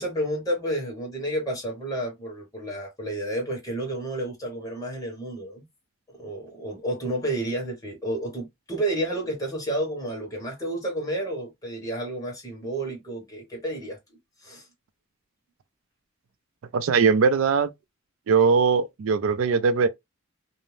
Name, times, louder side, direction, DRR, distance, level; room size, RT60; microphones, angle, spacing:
voice 1, 0.0-5.6 6.2-14.0 14.4-14.7, right 1 dB, 15° left, 1.1 m, -30 dB
voice 2, 16.7-17.7 18.3-19.9, right 5 dB, 70° right, 0.3 m, -20 dB
2.6 x 2.0 x 3.1 m
head